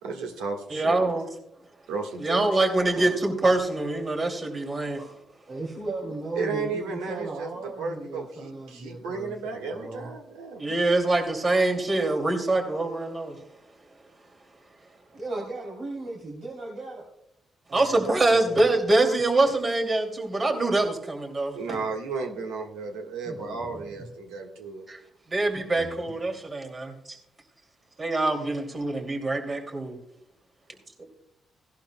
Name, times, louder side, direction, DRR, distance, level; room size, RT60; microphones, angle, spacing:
voice 1, 0.0-1.1 1.9-2.7 6.4-10.8 21.5-24.9, right 4 dB, 85° right, 3 dB, 1.5 m, -33 dB
voice 2, 0.7-1.2 2.2-5.0 10.6-13.4 17.7-21.8 24.9-25.0 25.3-26.9 28.0-30.0, right 2 dB, 40° right, 3 dB, 2.5 m, -24 dB
voice 3, 5.5-10.1 14.8-14.9 15.1-17.0 17.7-18.0 18.2-18.7 23.2-24.1 25.5-25.9, right 2 dB, 70° right, -2 dB, 2.9 m, -37 dB
17.5 x 11.5 x 2.2 m, 0.78 s
supercardioid pair, 50°, 0 cm